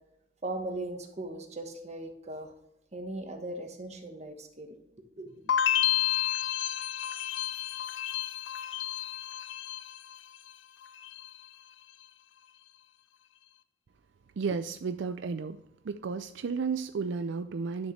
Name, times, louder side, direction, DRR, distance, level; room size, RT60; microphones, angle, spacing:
voice 1, 0.4-2.5 2.9-4.8 5.2-5.5, right 2 dB, 35° right, 4 dB, 1.3 m, -38 dB
sound 1, 5.5-10.5 10.8-11.5, left 11 dB, 80° left, 0.5 m, -31 dB
voice 2, 14.4-17.9, right 5 dB, 75° right, 10 dB, 0.4 m, -33 dB
11.0 x 6.5 x 3.2 m, 0.81 s
head